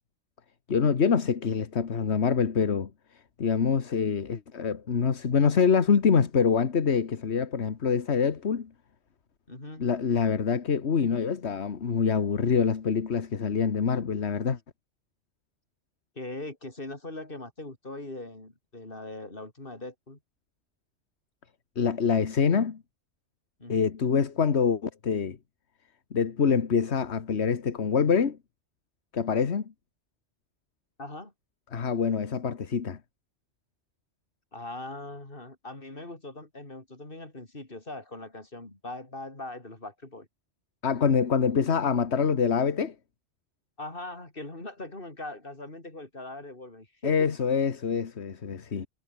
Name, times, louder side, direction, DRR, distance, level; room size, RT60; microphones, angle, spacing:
voice 1, 0.7-2.9 3.4-8.7 9.8-14.6 21.7-22.8 23.7-25.4 26.1-28.4 29.1-29.7 31.7-33.0 40.8-42.9 47.0-48.9, left 6 dB, 70° left, 1.7 m, -25 dB
voice 2, 9.5-9.9 16.2-20.2 23.6-23.8 31.0-31.3 34.5-40.3 43.8-47.3, left 2 dB, 50° left, 4.5 m, -41 dB
omnidirectional pair, 1.2 m